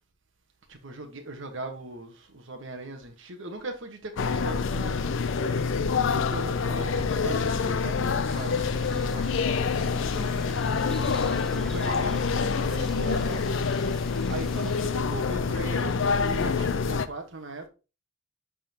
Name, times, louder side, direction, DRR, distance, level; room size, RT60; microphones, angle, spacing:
voice 1, 0.7-5.0 5.4-5.6 6.0-8.7 8.9-10.4 11.3-13.4 14.3-17.7, right 2 dB, 60° right, 1.2 m, -39 dB
sound 1, 4.2-17.1, left 5 dB, 60° left, 0.5 m, -26 dB
sound 2, 6.7-11.7, right 1 dB, 35° right, 1.6 m, -46 dB
sound 3, 8.3-14.9, equal, ahead, 0.5 m, -46 dB
11.0 x 3.8 x 2.8 m
head